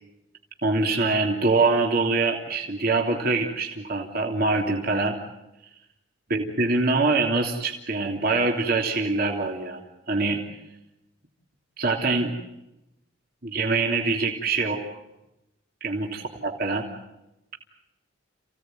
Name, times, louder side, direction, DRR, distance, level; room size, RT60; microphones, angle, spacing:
voice 1, 0.6-5.2 6.3-9.8 10.1-10.4 11.8-12.4 13.4-14.8 15.8-16.8, right 3 dB, 50° right, 1 dB, 3.1 m, -24 dB
29.5 x 17.0 x 9.2 m, 0.92 s
head